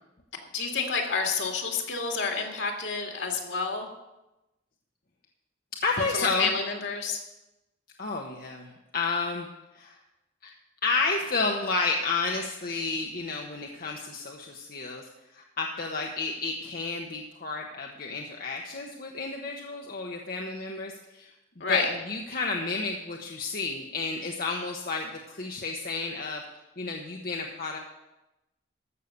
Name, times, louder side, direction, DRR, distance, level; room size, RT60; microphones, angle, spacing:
voice 1, 0.5-3.9 6.1-7.2 21.6-21.9, left 4 dB, 70° left, 2 dB, 2.2 m, -29 dB
voice 2, 5.8-6.5 8.0-9.5 9.7-10.0 10.4-10.5 10.8-21.3 21.7-26.4 26.8-27.8, left 3 dB, 50° left, 0 dB, 1.0 m, -31 dB
14.0 x 6.5 x 6.7 m, 0.98 s
head